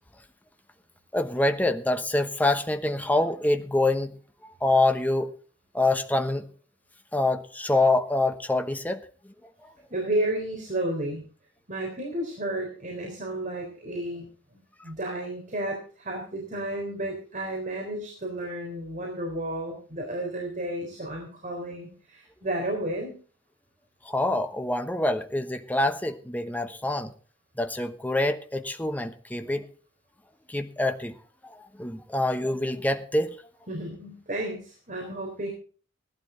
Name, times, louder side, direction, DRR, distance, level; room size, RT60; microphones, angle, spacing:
voice 1, 1.1-4.1 4.6-5.3 5.7-6.5 7.1-9.0 24.1-27.1 27.6-29.6 30.5-31.1 31.8-33.4, left 2 dB, 10° left, 1.0 m, -25 dB
voice 2, 9.9-11.2 11.7-14.2 14.5-23.2 33.7-35.5, right 1 dB, 45° right, 3.8 m, -32 dB
16.5 x 12.0 x 3.9 m
head